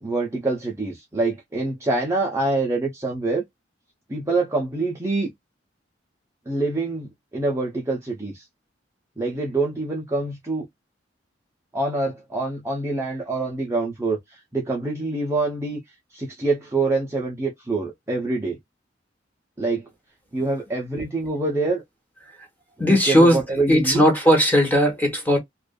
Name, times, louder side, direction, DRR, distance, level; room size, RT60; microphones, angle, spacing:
voice 1, 0.0-3.4 4.1-5.3 6.5-8.4 9.2-10.7 11.7-14.2 14.5-15.8 16.1-18.6 19.6-19.8 20.3-21.8 22.8-24.0, right 3 dB, 15° right, 0.6 m, -25 dB
voice 2, 22.8-25.4, equal, 10° left, 0.9 m, -18 dB
2.5 x 2.4 x 2.2 m
head